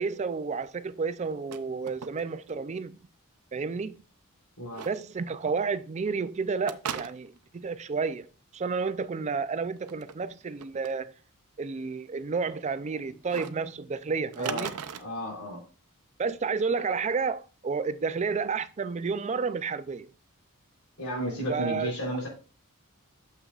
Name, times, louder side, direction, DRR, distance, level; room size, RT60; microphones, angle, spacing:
voice 1, 0.0-3.0 3.5-4.0 4.8-11.1 11.6-14.8 16.2-20.1 21.5-21.9, right 5 dB, 30° right, 0.4 m, -31 dB
sound 1, 1.2-1.6 1.9-2.5 2.8-2.9 4.7-4.9 6.7-7.5 9.8-10.1 10.6-10.9 13.3-13.5 14.3-15.0, right 7 dB, 90° right, 0.6 m, -37 dB
voice 2, 14.4-14.7 15.0-15.6 21.0-22.3, equal, 75° left, 3.6 m, -33 dB
8.9 x 6.7 x 2.4 m
head